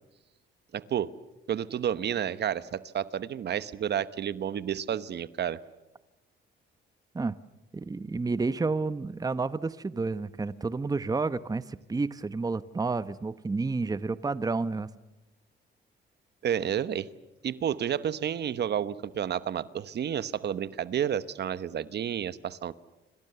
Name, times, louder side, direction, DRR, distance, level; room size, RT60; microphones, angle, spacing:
voice 1, 0.7-1.1 1.5-5.6 16.4-17.1 17.4-22.7, right 9 dB, 60° right, 15 dB, 1.1 m, -30 dB
voice 2, 7.7-14.9, right 3 dB, 20° right, 14 dB, 0.9 m, -30 dB
27.5 x 26.5 x 6.9 m, 1.0 s
cardioid pair, 90°, 20 cm